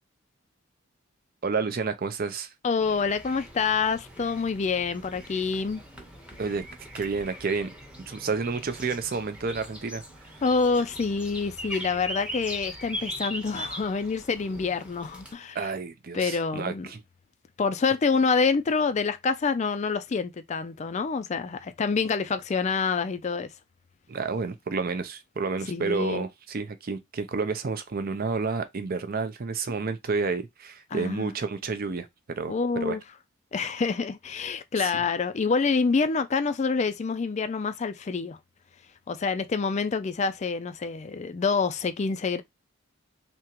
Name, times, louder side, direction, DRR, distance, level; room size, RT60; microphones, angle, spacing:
voice 1, 1.4-2.5 6.4-6.6 6.9-7.7 8.1-10.3 15.5-17.0 24.1-32.1 32.4-33.0 34.8-35.0, right 4 dB, 45° right, 0.5 m, -30 dB
voice 2, 2.6-5.8 10.4-15.6 16.1-16.9 17.6-23.5 25.7-26.3 30.9-31.3 32.5-33.0 33.5-38.4 39.1-42.4, left 4 dB, 35° left, 0.3 m, -27 dB
Kapturka w parku, 2.8-15.3, equal, 5° right, 0.8 m, -41 dB
3.5 x 2.9 x 2.9 m
head